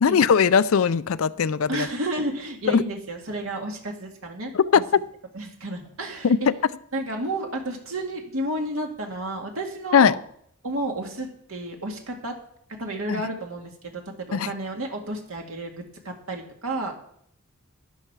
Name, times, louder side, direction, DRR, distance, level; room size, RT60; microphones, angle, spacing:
voice 1, 0.0-1.9 2.7-2.8 4.5-4.8 6.2-6.4 9.9-10.1 13.1-13.2 14.3-14.5, left 6 dB, 70° left, 0.4 m, -19 dB
voice 2, 1.7-4.8 5.3-6.3 6.9-10.2 10.6-12.3 12.8-16.9, right 1 dB, 70° right, 2.0 m, -31 dB
12.0 x 11.0 x 4.7 m
head